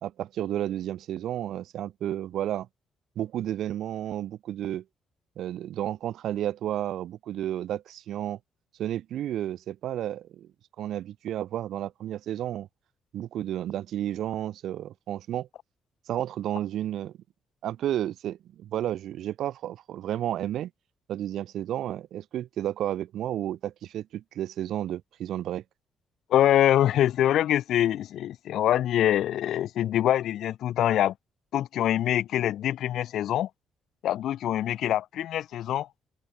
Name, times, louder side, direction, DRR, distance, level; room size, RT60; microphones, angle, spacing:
voice 1, 0.0-2.7 3.2-4.8 5.4-8.4 8.8-10.5 10.8-12.7 13.1-15.5 16.1-17.1 17.6-20.7 21.1-25.6, right 12 dB, 75° right, 4.5 m, -32 dB
voice 2, 26.3-31.1 31.5-33.5 34.0-35.9, left 12 dB, 75° left, 0.6 m, -24 dB
cardioid pair, 90°, 0 cm